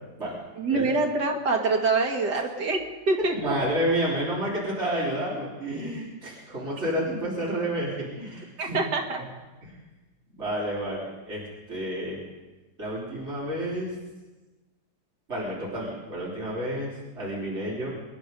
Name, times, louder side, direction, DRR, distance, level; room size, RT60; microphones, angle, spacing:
voice 1, 0.6-3.6 8.6-9.2, right 3 dB, 75° right, 2 dB, 2.6 m, -25 dB
voice 2, 3.3-8.8 9.6-9.8 10.3-12.2 12.8-13.9 15.3-17.9, right 1 dB, 40° right, -5 dB, 4.2 m, -30 dB
24.5 x 10.5 x 5.4 m, 1.2 s
omnidirectional pair, 1.8 m